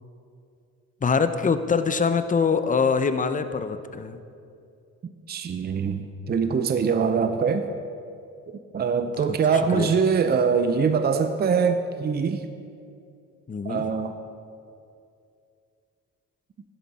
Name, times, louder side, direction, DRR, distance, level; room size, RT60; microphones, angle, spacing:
voice 1, 1.0-4.2 9.7-9.9 13.5-13.8, left 5 dB, 25° left, 10 dB, 0.7 m, -24 dB
voice 2, 5.3-7.7 8.7-12.5 13.6-14.1, right 6 dB, 35° right, 8 dB, 0.6 m, -23 dB
11.5 x 10.5 x 4.2 m, 2.5 s
cardioid pair, 90°, 30 cm